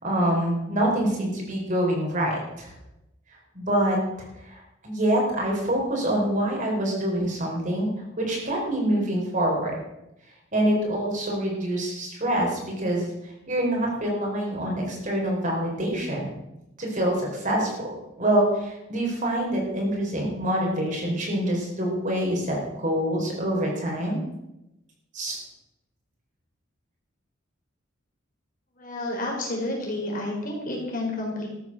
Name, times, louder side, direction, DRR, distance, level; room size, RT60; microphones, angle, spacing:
voice 1, 0.0-2.7 3.5-4.0 4.4-7.9 8.2-9.7 10.5-13.1 13.5-16.3 16.8-17.9 18.2-24.2 25.1-25.4, right 1 dB, 40° right, -1 dB, 4.6 m, -25 dB
voice 2, 28.8-31.5, left 1 dB, 45° left, -1 dB, 4.4 m, -30 dB
14.0 x 10.5 x 6.2 m, 0.90 s
head